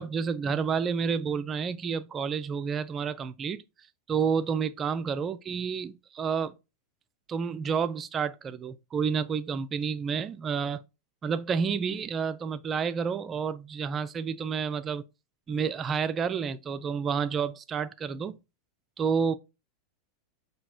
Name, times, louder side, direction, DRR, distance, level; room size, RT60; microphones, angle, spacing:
voice 1, 0.0-3.6 4.1-6.5 7.3-10.8 11.2-15.0 15.5-18.4 19.0-19.3, right 6 dB, 25° right, 0.3 m, -30 dB
5.9 x 2.7 x 2.3 m
figure-of-eight pair, 85°, 0 cm